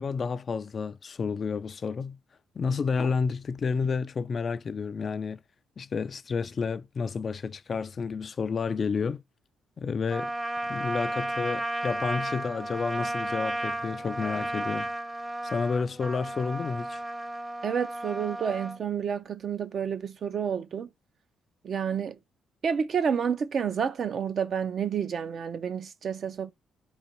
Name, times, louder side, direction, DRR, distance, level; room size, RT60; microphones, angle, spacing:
voice 1, 0.0-2.2 2.5-5.4 5.8-9.2 9.8-10.3 10.7-14.9 15.4-17.0, left 5 dB, 45° left, 0.3 m, -30 dB
Trumpet, 10.1-18.8, right 1 dB, 15° right, 0.7 m, -33 dB
voice 2, 17.6-20.9 21.6-22.2 22.6-26.5, right 7 dB, 55° right, 0.5 m, -29 dB
4.0 x 2.9 x 4.4 m
cardioid pair, 90°, 0 cm